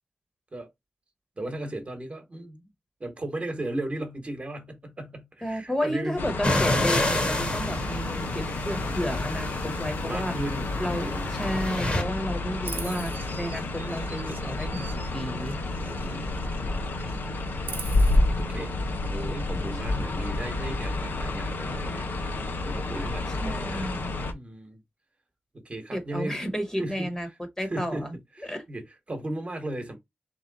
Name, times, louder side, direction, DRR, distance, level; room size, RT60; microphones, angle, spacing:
voice 1, 1.4-2.7 3.0-6.2 10.0-11.4 15.8-16.8 18.4-18.8 19.1-22.1 22.6-23.9 24.3-24.8 25.5-26.4 26.8-27.1 27.6-28.1 28.4-30.0, right 1 dB, 40° right, 1.2 m, -36 dB
voice 2, 5.4-10.3 10.8-15.6 23.4-24.1 25.9-27.3 27.6-28.1 28.4-28.6, equal, 15° left, 1.1 m, -32 dB
sound 1, 6.2-24.3, left 2 dB, 80° left, 0.8 m, -30 dB
sound 2, 6.4-12.0, left 1 dB, 30° left, 1.1 m, -29 dB
Chirp tweet, 12.6-16.6 16.9-18.2, right 4 dB, 75° right, 0.8 m, -43 dB
3.7 x 3.1 x 3.9 m
wide cardioid pair, 125°, 3 cm